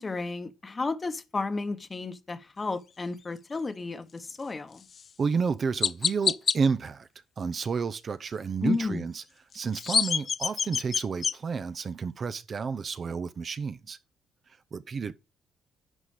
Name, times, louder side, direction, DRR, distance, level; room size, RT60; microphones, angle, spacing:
voice 1, 0.0-4.9 8.6-9.1, left 3 dB, 30° left, 1.1 m, -32 dB
Chirp tweet, 4.9-5.1 5.8-6.6 9.5-11.3, left 6 dB, 50° left, 0.4 m, -26 dB
voice 2, 5.2-7.1 7.4-9.2 9.5-14.0 14.7-15.1, right 5 dB, 45° right, 0.6 m, -30 dB
11.0 x 4.2 x 4.9 m
cardioid pair, 90°, 0 cm